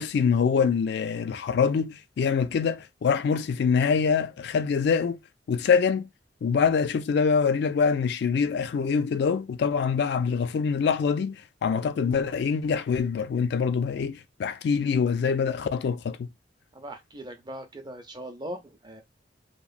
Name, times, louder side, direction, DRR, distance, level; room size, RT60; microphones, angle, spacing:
voice 1, 0.0-5.2 5.5-6.1 6.4-16.3, left 6 dB, 65° left, 0.3 m, -25 dB
voice 2, 16.7-19.0, right 1 dB, 25° right, 0.5 m, -40 dB
2.9 x 2.1 x 2.4 m
head